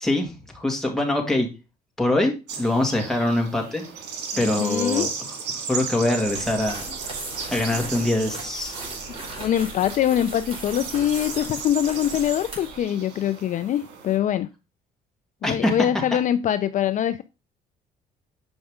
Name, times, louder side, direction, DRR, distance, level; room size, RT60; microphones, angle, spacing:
voice 1, 0.0-1.5 2.0-3.8 4.4-5.1 5.7-6.8 7.5-8.8 15.4-15.7, left 1 dB, 5° left, 2.1 m, -23 dB
sound 1, 2.5-14.2, right 5 dB, 85° right, 2.0 m, -35 dB
voice 2, 4.3-5.1 9.4-14.5 15.4-17.2, left 10 dB, 50° left, 0.4 m, -23 dB
sound 2, 6.2-12.8, right 2 dB, 35° right, 4.3 m, -37 dB
7.1 x 5.3 x 3.6 m
cardioid pair, 110°, 17 cm